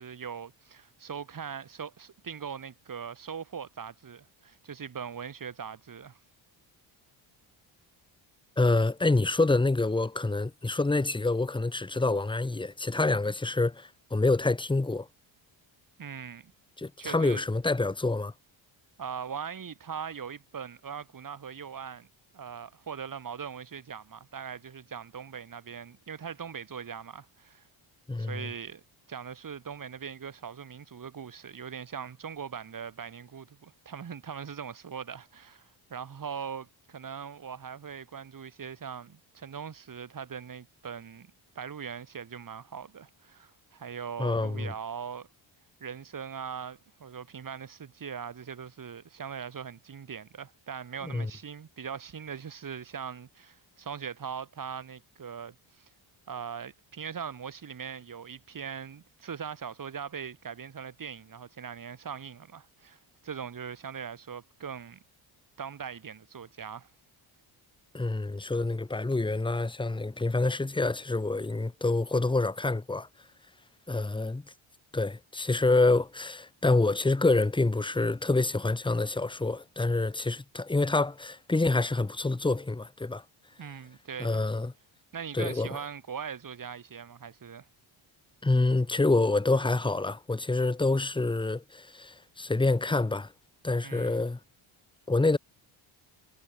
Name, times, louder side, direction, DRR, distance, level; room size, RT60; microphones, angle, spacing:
voice 1, 0.0-6.2 16.0-16.5 17.0-17.4 19.0-22.1 22.3-27.7 28.2-28.8 29.1-45.3 45.8-55.9 56.3-65.0 65.6-66.9 83.6-84.4 85.1-87.7 93.8-94.3, right 7 dB, 40° right, 3.8 m, -40 dB
voice 2, 8.6-15.1 16.8-18.3 28.1-28.4 44.2-44.7 51.0-51.3 67.9-73.1 73.9-74.4 74.9-83.2 84.2-84.7 85.3-85.7 88.4-93.3 93.6-94.4 95.1-95.4, left 2 dB, 10° left, 1.2 m, -27 dB
cardioid pair, 115°, 49 cm